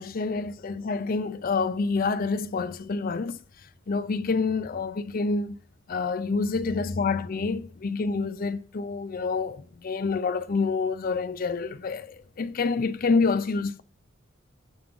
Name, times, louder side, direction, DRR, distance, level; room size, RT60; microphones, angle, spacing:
voice 1, 0.0-3.4 3.9-5.6 5.9-13.8, left 4 dB, 45° left, 0.4 m, -27 dB
7.3 x 4.8 x 3.7 m
head